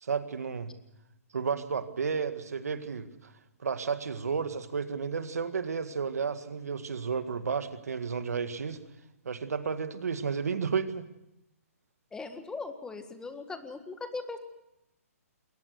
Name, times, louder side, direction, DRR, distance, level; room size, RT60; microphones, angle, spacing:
voice 1, 0.0-0.7 1.3-3.3 3.6-8.8 9.3-11.1, right 5 dB, 80° right, 10 dB, 1.9 m, -32 dB
voice 2, 12.1-14.4, left 3 dB, 10° left, 9 dB, 1.7 m, -39 dB
22.0 x 18.5 x 8.0 m, 0.87 s
hypercardioid pair, 135°, 8 cm